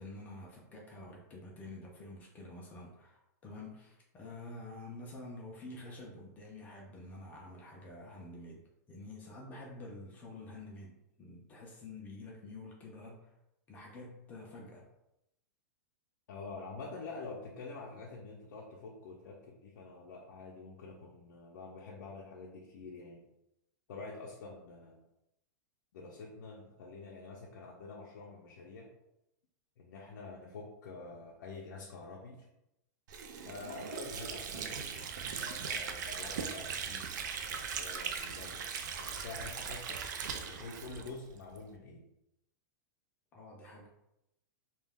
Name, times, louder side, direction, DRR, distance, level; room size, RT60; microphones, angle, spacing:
voice 1, 0.0-13.3 13.7-14.8 43.3-43.9, left 2 dB, 15° left, -2 dB, 0.3 m, -48 dB
voice 2, 16.3-23.2 23.9-25.0 25.9-28.9 29.8-32.5 33.4-35.0 35.3-38.7 39.0-40.0 40.5-42.0, left 3 dB, 80° left, -2 dB, 0.5 m, -47 dB
Water / Sink (filling or washing), 33.1-41.6, right 6 dB, 75° right, 0.4 m, -39 dB
2.3 x 2.1 x 3.4 m, 0.87 s
supercardioid pair, 165°, 10 cm